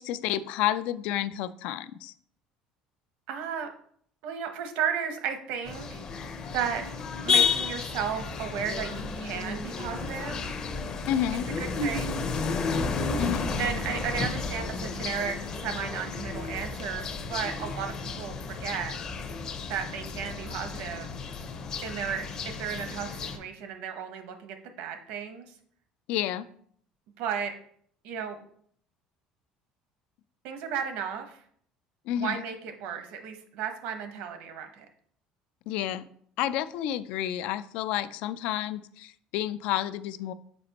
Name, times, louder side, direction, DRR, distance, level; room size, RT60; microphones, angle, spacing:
voice 1, 0.0-2.1 11.1-11.5 13.2-13.5 26.1-26.5 32.1-32.4 35.7-36.0 36.4-40.3, left 12 dB, 65° left, 15 dB, 0.3 m, -30 dB
voice 2, 3.3-3.7 4.2-6.0 6.5-6.8 7.2-10.4 11.6-12.2 13.6-19.0 19.7-21.1 21.8-25.5 27.2-27.5 28.0-28.4 30.4-31.4 32.2-34.9, right 7 dB, 75° right, 7 dB, 0.9 m, -34 dB
sound 1, 5.7-23.4, left 4 dB, 35° left, 0.6 m, -32 dB
6.7 x 4.9 x 2.9 m, 0.62 s
cardioid pair, 160°, 2 cm